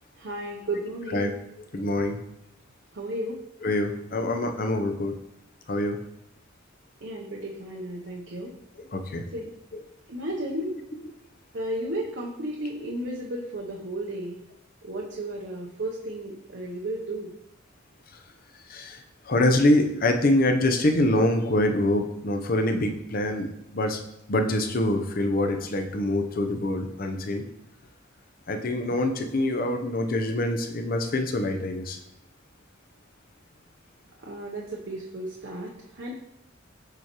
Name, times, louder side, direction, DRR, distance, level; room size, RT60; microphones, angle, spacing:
voice 1, 0.2-1.3 2.9-3.4 7.0-8.5 9.3-9.5 10.1-10.8 11.5-14.4 14.8-17.3 34.2-36.1, right 1 dB, 60° right, -2 dB, 0.7 m, -33 dB
voice 2, 1.6-2.2 3.6-5.1 5.7-6.0 8.9-9.2 18.7-24.0 24.3-27.4 28.5-32.0, left 1 dB, 45° left, 5 dB, 0.6 m, -25 dB
6.8 x 4.7 x 2.9 m, 0.79 s
head